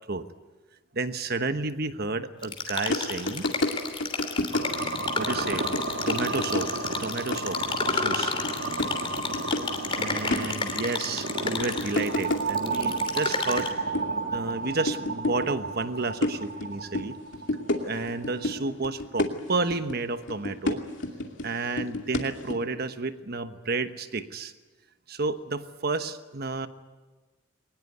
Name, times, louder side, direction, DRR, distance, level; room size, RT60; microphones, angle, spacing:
voice 1, 0.9-3.5 5.2-5.7 6.1-6.7 7.0-7.6 7.9-8.4 9.9-13.7 14.3-17.2 17.8-20.8 21.4-24.5 25.1-26.7, right 3 dB, 55° right, 10 dB, 1.2 m, -31 dB
sound 1, 2.4-13.7, left 4 dB, 25° left, 3.0 m, -32 dB
sound 2, 2.9-3.0 3.3-3.7 4.0-5.1 5.4-6.9 7.3-8.1 8.4-8.5 8.8-9.6 9.9-10.7 11.4-12.6 13.1-13.6 13.9-15.5 15.8-17.0 17.3-18.6 18.8-19.9 20.3-21.5 21.8-22.5, left 2 dB, 65° left, 2.6 m, -29 dB
sound 3, 4.5-18.5, right 3 dB, 80° right, 2.4 m, -33 dB
22.0 x 20.0 x 9.3 m, 1.3 s
head